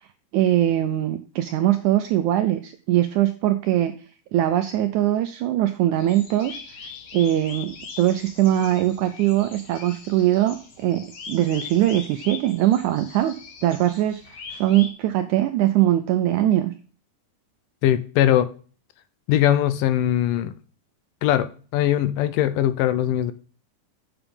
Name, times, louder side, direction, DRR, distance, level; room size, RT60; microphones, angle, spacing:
voice 1, 0.3-3.9 4.3-13.3 13.6-16.7, right 13 dB, 85° right, 1.7 m, -22 dB
sound 1, 6.0-14.9, left 5 dB, 55° left, 2.4 m, -41 dB
voice 2, 17.8-18.5 19.3-20.6 21.2-23.3, left 12 dB, 80° left, 2.1 m, -21 dB
7.1 x 7.0 x 5.1 m
omnidirectional pair, 4.0 m